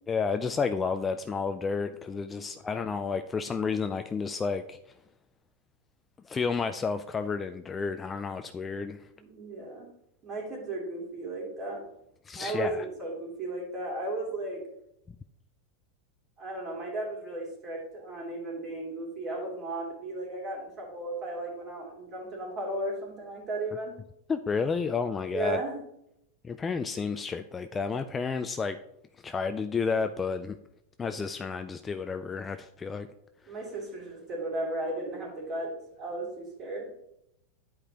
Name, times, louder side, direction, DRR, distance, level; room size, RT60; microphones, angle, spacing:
voice 1, 0.1-4.8 6.3-9.0 12.3-12.8 24.3-25.6 26.4-28.8 29.2-30.6 31.0-33.1, left 5 dB, 15° left, 8 dB, 0.3 m, -31 dB
voice 2, 9.2-9.9 10.2-11.8 12.4-14.6 16.4-23.9 25.3-25.8 33.5-36.9, right 2 dB, 30° right, -2 dB, 3.0 m, -35 dB
10.5 x 4.9 x 2.9 m, 0.78 s
supercardioid pair, 135°, 0 cm